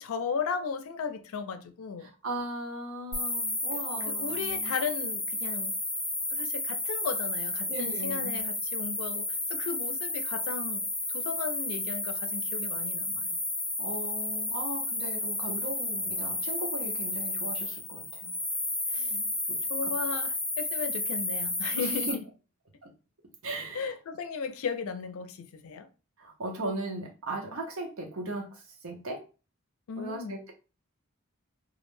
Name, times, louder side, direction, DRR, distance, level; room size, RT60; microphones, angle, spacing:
voice 1, 0.0-2.1 3.7-5.8 6.3-13.4 18.9-19.2 19.7-22.2 23.7-25.9 29.9-30.4, left 5 dB, 85° left, 0.4 m, -36 dB
voice 2, 2.0-4.7 7.7-8.4 13.8-18.3 19.0-19.6 19.8-19.9 21.8-22.2 22.8-22.9 23.4-23.9 26.2-29.2 30.0-30.5, right 1 dB, 85° right, 0.8 m, -38 dB
sound 1, 3.1-22.1, left 2 dB, 5° left, 0.4 m, -32 dB
2.4 x 2.1 x 3.0 m
head